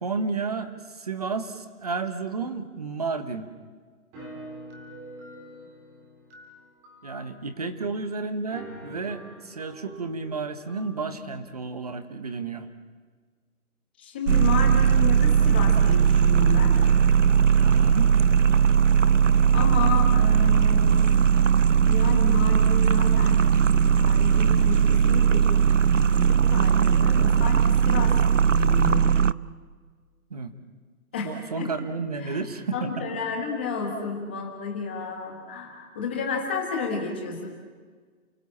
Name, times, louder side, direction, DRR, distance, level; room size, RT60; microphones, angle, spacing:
voice 1, 0.0-3.5 7.0-12.7 17.6-18.1 30.3-30.5 31.2-33.0, right 4 dB, 25° right, 10 dB, 1.4 m, -32 dB
sound 1, 4.1-7.5 7.9-8.0 8.3-11.2, right 1 dB, 10° right, 2.4 m, -45 dB
voice 2, 14.0-16.8 19.5-21.0 21.8-23.4 23.7-25.6 25.9-28.1 28.5-29.2 31.1-31.7 32.2-32.4 32.7-37.5, left 5 dB, 5° left, 1 dB, 1.3 m, -31 dB
sound 2, 14.3-29.3, right 7 dB, 55° right, 0.7 m, -19 dB
29.5 x 20.5 x 8.7 m, 1.5 s
hypercardioid pair, 175°, 45 cm